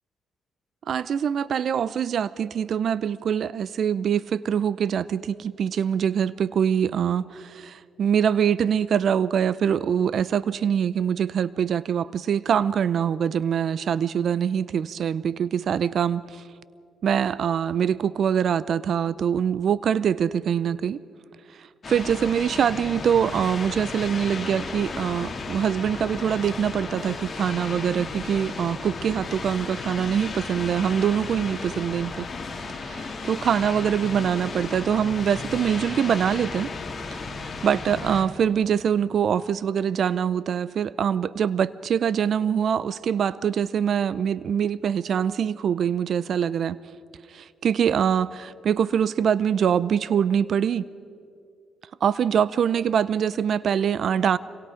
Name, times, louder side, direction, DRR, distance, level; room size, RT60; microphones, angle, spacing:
voice 1, 0.9-16.4 17.0-21.0 21.6-32.3 32.7-36.7 37.6-46.8 47.3-50.9 52.0-54.4, right 8 dB, 60° right, 18 dB, 0.5 m, -24 dB
sound 1, 21.8-38.2, left 4 dB, 35° left, 2.8 m, -34 dB
26.5 x 24.5 x 5.1 m, 2.4 s
cardioid pair, 90°, 0 cm